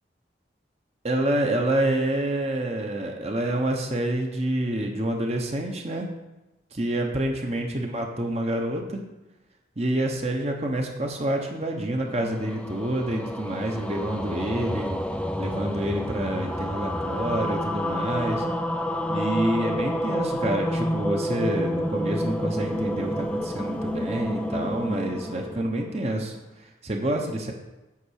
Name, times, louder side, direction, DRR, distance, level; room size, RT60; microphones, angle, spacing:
voice 1, 1.0-6.1 6.7-9.0 9.8-14.9 15.4-18.4 19.1-26.3 26.8-27.5, right 1 dB, 35° right, 2 dB, 1.0 m, -27 dB
sound 1, 11.9-26.4, equal, 5° left, 0.4 m, -29 dB
8.5 x 5.3 x 6.5 m, 1.0 s
head